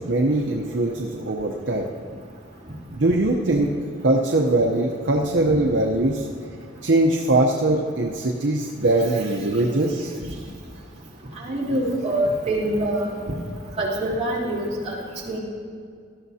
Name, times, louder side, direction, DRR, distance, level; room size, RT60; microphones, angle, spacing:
voice 1, 0.0-1.9 2.9-3.7 4.0-6.3 6.8-10.1, right 2 dB, 60° right, -1 dB, 0.8 m, -21 dB
voice 2, 11.4-13.1 13.8-15.4, right 1 dB, 30° right, -7 dB, 3.1 m, -25 dB
18.0 x 12.5 x 2.8 m, 2.2 s
head